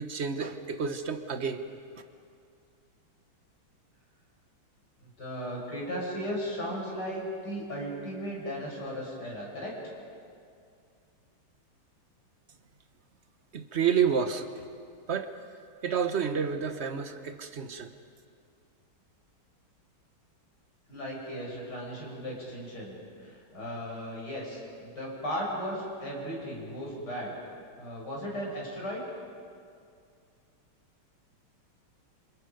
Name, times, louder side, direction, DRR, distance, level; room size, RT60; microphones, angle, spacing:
voice 1, 0.0-1.6 13.5-14.5 15.1-15.4 15.8-17.9, right 7 dB, 40° right, 7 dB, 1.1 m, -29 dB
voice 2, 5.0-9.7 20.9-27.4 27.8-29.0, equal, 50° left, -3 dB, 6.6 m, -36 dB
28.5 x 27.0 x 5.2 m, 2.3 s
omnidirectional pair, 2.3 m